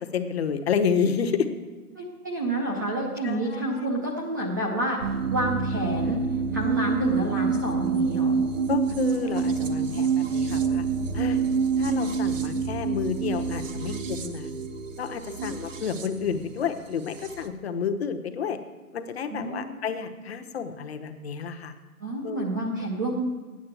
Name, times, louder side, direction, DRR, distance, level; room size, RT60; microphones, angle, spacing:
voice 1, 0.1-1.5 3.2-3.8 8.7-10.8 11.1-11.4 11.8-14.5 15.0-18.6 18.9-21.7 22.2-22.5, left 6 dB, 45° left, 8 dB, 1.0 m, -30 dB
voice 2, 2.0-5.0 5.3-6.2 6.5-8.4 15.4-15.6 19.3-19.8 22.0-23.2, right 1 dB, 15° right, -2 dB, 0.5 m, -29 dB
sound 1, 5.0-17.5, right 5 dB, 55° right, 1.1 m, -27 dB
8.7 x 7.9 x 9.0 m, 1.3 s
hypercardioid pair, 155°, 44 cm